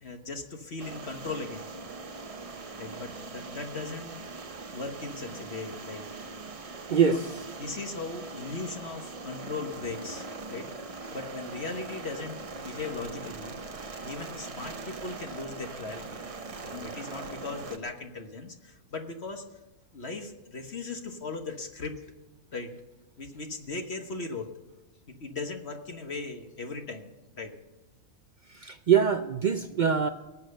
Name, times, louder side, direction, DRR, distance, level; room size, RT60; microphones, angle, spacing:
voice 1, 0.0-1.7 2.8-4.2 4.7-6.1 7.0-7.2 7.6-13.8 14.0-16.2 16.6-19.4 19.9-21.9 22.5-22.7 23.2-24.5 25.1-27.5, left 3 dB, 50° left, 5 dB, 1.4 m, -38 dB
sound 1, 0.8-17.8, right 3 dB, 30° right, 0.7 m, -41 dB
voice 2, 6.9-7.3 28.6-30.1, right 7 dB, 75° right, 9 dB, 0.4 m, -23 dB
18.0 x 8.4 x 6.6 m, 1.1 s
omnidirectional pair, 1.5 m